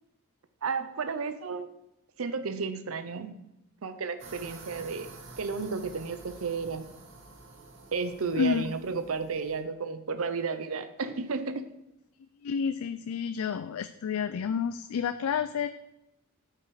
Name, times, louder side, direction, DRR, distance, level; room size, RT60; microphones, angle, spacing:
voice 1, 0.6-1.7 2.2-3.4 3.8-5.1 5.4-6.9 7.9-11.6, right 4 dB, 75° right, 10 dB, 0.6 m, -32 dB
sound 1, 4.2-9.6, right 3 dB, 60° right, 1.3 m, -49 dB
voice 2, 8.4-8.7 12.4-15.7, left 7 dB, 90° left, 11 dB, 0.4 m, -30 dB
8.3 x 5.9 x 4.8 m, 0.89 s
head